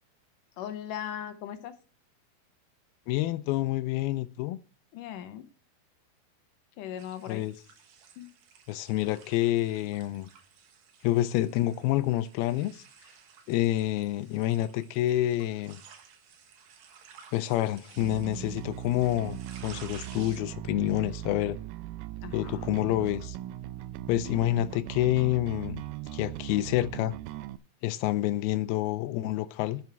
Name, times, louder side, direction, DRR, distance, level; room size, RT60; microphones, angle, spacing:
voice 1, 0.6-1.8 4.9-5.4 6.8-7.5 8.2-8.3 22.2-22.8 24.3-24.6, left 10 dB, 70° left, 2.2 m, -39 dB
voice 2, 3.1-4.6 7.3-7.5 8.7-10.3 11.0-12.8 13.5-15.8 17.3-21.6 22.3-23.4 24.1-25.8 26.1-27.1 27.8-29.8, left 15 dB, 85° left, 2.5 m, -28 dB
sound 1, 7.0-20.4, right 7 dB, 60° right, 2.2 m, -54 dB
Bass guitar, 18.0-27.6, right 14 dB, 85° right, 1.9 m, -39 dB
10.5 x 9.4 x 3.4 m
omnidirectional pair, 4.3 m